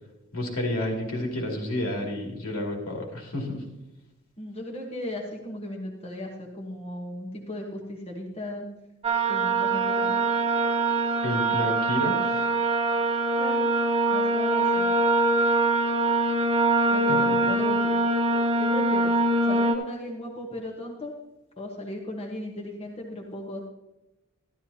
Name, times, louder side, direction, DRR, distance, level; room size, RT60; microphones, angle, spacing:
voice 1, 0.3-3.6 11.2-12.4 17.1-17.2, left 1 dB, 75° left, -1 dB, 2.6 m, -30 dB
voice 2, 4.4-8.6 9.3-10.2 13.4-13.7 14.1-14.9 16.9-18.0 18.6-19.1 19.5-21.1 21.6-23.7, left 1 dB, 25° left, -1 dB, 1.2 m, -36 dB
sound 1, 9.0-19.7, right 2 dB, 25° right, 0.9 m, -23 dB
13.0 x 12.0 x 2.8 m, 0.97 s
head